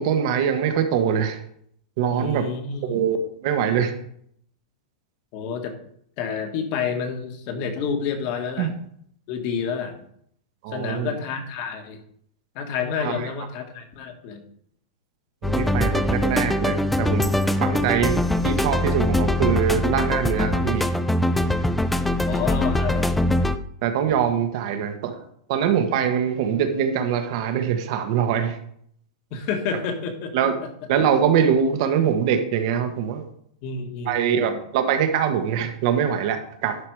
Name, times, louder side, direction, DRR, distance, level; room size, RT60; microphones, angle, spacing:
voice 1, 0.0-1.4 2.0-2.5 2.8-3.2 3.4-3.9 8.6-8.7 10.6-11.1 13.0-13.3 15.4-17.3 17.6-20.9 23.8-25.1 25.5-28.6 30.3-30.5 30.9-33.3 34.0-36.8, right 8 dB, 50° right, 7 dB, 1.4 m, -23 dB
voice 2, 2.1-3.0 5.3-5.8 6.2-8.7 9.3-10.0 10.7-12.0 12.5-14.4 22.2-23.2 24.7-24.9 29.3-30.3 33.6-34.6, left 6 dB, 45° left, 6 dB, 1.6 m, -29 dB
sound 1, 15.4-23.6, left 1 dB, 5° left, 0.4 m, -22 dB
11.5 x 5.0 x 4.8 m, 0.68 s
supercardioid pair, 150°, 4 cm